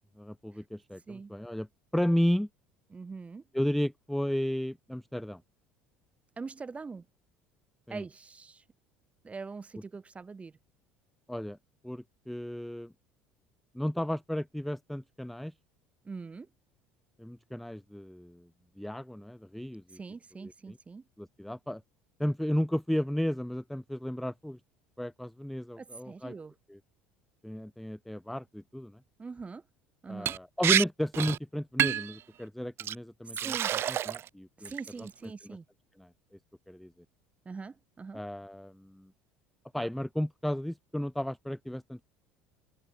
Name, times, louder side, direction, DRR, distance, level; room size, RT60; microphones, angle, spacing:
voice 1, 0.2-1.7 1.9-2.5 3.5-5.4 7.9-8.0 11.3-11.6 11.8-12.9 13.7-15.5 17.2-18.5 18.8-20.0 20.4-20.8 21.2-21.8 22.2-24.6 25.0-26.3 26.7-26.8 27.4-29.0 30.1-33.5 33.8-34.7 35.0-35.1 36.0-36.1 36.7-36.9 38.1-39.1 39.7-42.0, equal, ahead, 0.3 m, -33 dB
voice 2, 2.9-3.4 6.4-7.0 7.9-8.6 9.2-10.5 16.0-16.5 19.9-21.0 25.8-26.5 29.2-29.6 30.0-30.3 33.3-33.7 34.6-35.6 37.4-38.2, right 4 dB, 20° right, 1.2 m, -42 dB
Liquid, 30.3-30.4 30.6-30.8 31.1-31.4 31.8-32.1 32.8-32.9 33.4-34.3 34.6-35.1, right 11 dB, 45° right, 0.6 m, -28 dB
open air
hypercardioid pair, 65°, 6 cm